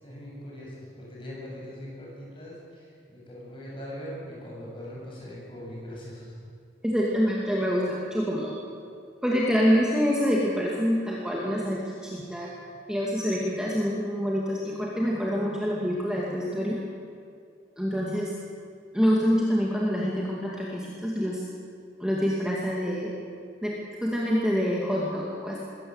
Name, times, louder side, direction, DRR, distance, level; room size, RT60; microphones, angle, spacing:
voice 1, 0.0-6.4, equal, 25° left, -4 dB, 7.7 m, -41 dB
voice 2, 6.8-8.6 9.2-12.5 12.9-16.8 17.8-18.3 18.9-21.4 22.0-23.1 23.6-25.6, equal, 5° right, -4 dB, 2.3 m, -26 dB
22.0 x 17.0 x 8.0 m, 2.4 s
head